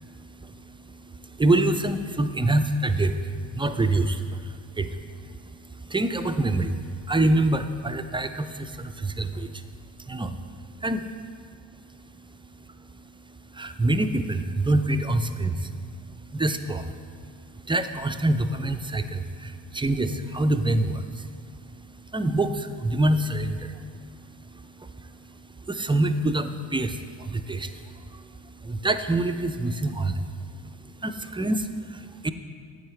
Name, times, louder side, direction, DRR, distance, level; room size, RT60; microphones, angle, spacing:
voice 1, 0.0-11.1 11.7-32.3, right 2 dB, 10° right, 8 dB, 0.4 m, -27 dB
8.9 x 8.3 x 3.2 m, 2.1 s
hypercardioid pair, 45°, 49 cm